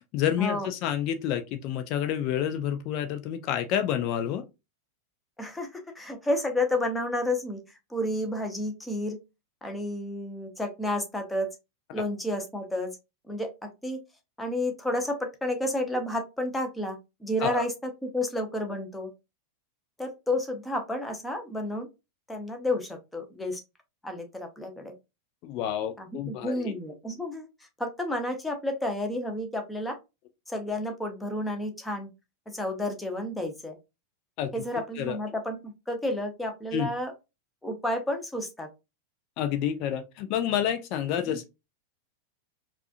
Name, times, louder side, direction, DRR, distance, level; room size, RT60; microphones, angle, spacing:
voice 1, 0.1-4.4 17.4-17.6 25.4-26.7 34.4-34.5 35.0-35.2 36.7-36.9 39.4-41.4, left 10 dB, 40° left, 0.4 m, -29 dB
voice 2, 5.4-7.6 7.9-9.2 9.6-11.5 11.9-12.9 13.3-14.0 14.4-17.7 18.0-19.1 20.0-21.9 22.3-23.6 24.0-24.9 26.0-27.5 27.8-30.0 30.5-32.1 32.5-33.8 34.5-37.1 37.6-38.7, left 1 dB, 5° left, 0.9 m, -31 dB
4.7 x 2.5 x 2.5 m
figure-of-eight pair, 90°, 0 cm